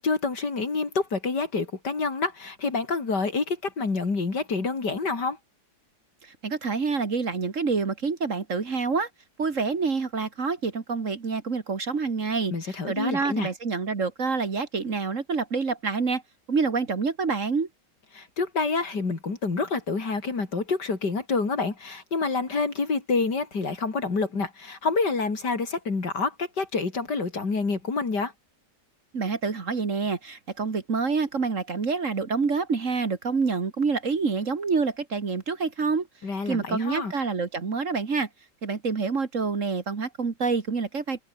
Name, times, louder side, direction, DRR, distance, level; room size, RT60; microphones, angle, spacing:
voice 1, 0.0-5.4 12.5-13.5 18.1-28.3 36.2-37.1, left 4 dB, 70° left, 4.1 m, -27 dB
voice 2, 6.2-9.1 9.4-12.5 12.9-16.2 16.5-17.7 29.1-36.1 36.5-38.3 38.6-41.2, right 4 dB, 45° right, 2.1 m, -27 dB
omnidirectional pair, 1.9 m